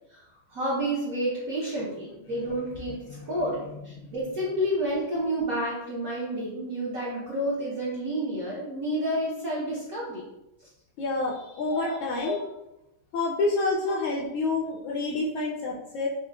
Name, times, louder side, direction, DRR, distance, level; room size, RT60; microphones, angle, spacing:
voice 1, 0.5-3.0 3.3-10.2 11.7-11.9 12.2-12.3, right 1 dB, 60° right, -7 dB, 0.9 m, -30 dB
voice 2, 2.3-4.3 11.0-12.4 13.1-16.1, left 3 dB, 75° left, -3 dB, 1.3 m, -29 dB
5.9 x 2.1 x 2.2 m, 0.90 s
omnidirectional pair, 2.4 m